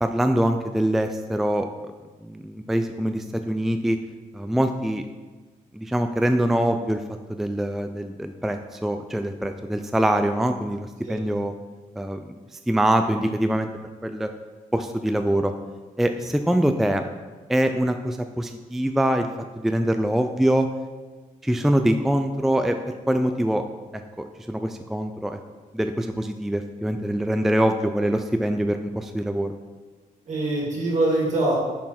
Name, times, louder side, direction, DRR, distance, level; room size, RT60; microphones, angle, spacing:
voice 1, 0.0-1.7 2.2-4.0 4.3-5.0 5.7-7.0 7.3-11.5 12.0-13.7 14.0-14.3 14.7-15.5 16.0-17.0 17.5-19.3 19.6-20.7 21.4-23.6 23.9-25.4 25.7-29.5, right 1 dB, ahead, 7 dB, 0.3 m, -24 dB
voice 2, 30.3-31.5, right 2 dB, 60° right, -3 dB, 2.4 m, -24 dB
6.1 x 6.1 x 4.3 m, 1.3 s
cardioid pair, 100°, 14 cm